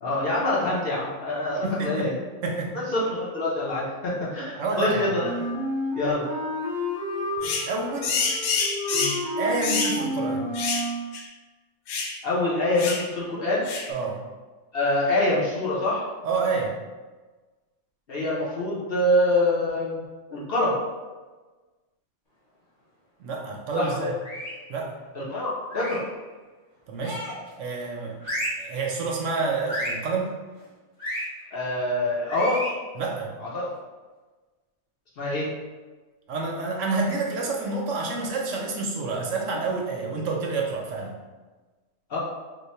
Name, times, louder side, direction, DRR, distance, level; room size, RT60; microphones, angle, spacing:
voice 1, 0.0-2.1 2.7-5.3 6.0-6.2 8.9-9.1 12.2-13.7 14.7-16.0 18.1-20.0 20.3-20.8 23.7-24.1 25.1-26.0 31.5-32.6 33.4-33.7 35.2-35.5 42.1-42.2, left 1 dB, 50° left, -6 dB, 0.8 m, -25 dB
voice 2, 1.6-2.1 2.4-2.8 4.6-5.1 7.7-8.2 9.4-10.5 13.9-14.2 16.2-16.7 23.2-24.1 24.7-24.9 26.9-27.3 27.6-28.2 28.6-30.3 32.9-33.3 36.3-41.2, right 3 dB, 70° right, 0 dB, 0.9 m, -28 dB
Wind instrument woodwind instrument, 5.2-11.0, equal, 35° right, 0.8 m, -30 dB
sound 1, 7.4-7.7 8.0-9.2 9.6-10.0 10.5-10.9 11.1-11.3 11.9-12.2 12.8-13.1 13.7-13.9, left 4 dB, 85° left, 1.0 m, -27 dB
sound 2, 24.2-24.7 25.7-26.1 27.0-27.5 28.2-28.7 29.7-30.1 31.0-31.3 32.3-32.8, equal, 30° left, 1.1 m, -32 dB
3.0 x 2.1 x 4.1 m, 1.3 s
omnidirectional pair, 1.4 m